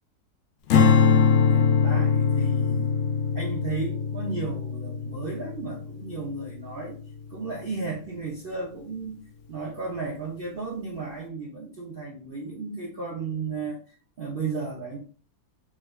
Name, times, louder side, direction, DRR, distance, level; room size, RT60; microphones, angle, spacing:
Strum, 0.7-7.1, left 6 dB, 70° left, 0.6 m, -22 dB
voice 1, 1.5-2.9 3.3-7.0 7.3-9.2 9.5-13.8 14.2-15.0, right 4 dB, 55° right, -3 dB, 0.6 m, -34 dB
4.5 x 2.2 x 2.2 m, 0.38 s
omnidirectional pair, 1.7 m